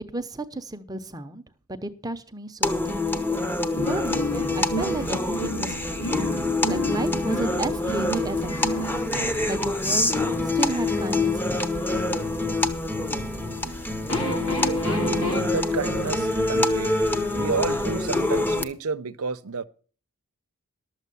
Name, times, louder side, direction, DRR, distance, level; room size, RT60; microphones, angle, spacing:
voice 1, 0.1-1.4 1.7-3.2 3.8-6.2 6.7-8.9 9.5-10.2 10.5-11.8, right 2 dB, 15° right, 0.8 m, -33 dB
sound 1, 2.6-18.6, left 2 dB, 10° left, 0.9 m, -26 dB
sound 2, 3.7-15.4, equal, 75° left, 2.9 m, -33 dB
voice 2, 14.9-17.0 17.3-19.6, right 5 dB, 80° right, 0.7 m, -30 dB
12.5 x 7.5 x 6.9 m
head